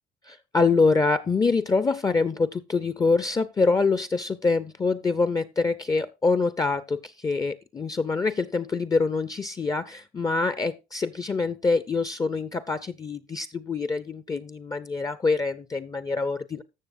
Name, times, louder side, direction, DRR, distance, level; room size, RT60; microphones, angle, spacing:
voice 1, 0.2-16.6, left 4 dB, 20° left, 14 dB, 0.5 m, -25 dB
14.0 x 6.7 x 2.5 m, 0.26 s
cardioid pair, 110°, 17 cm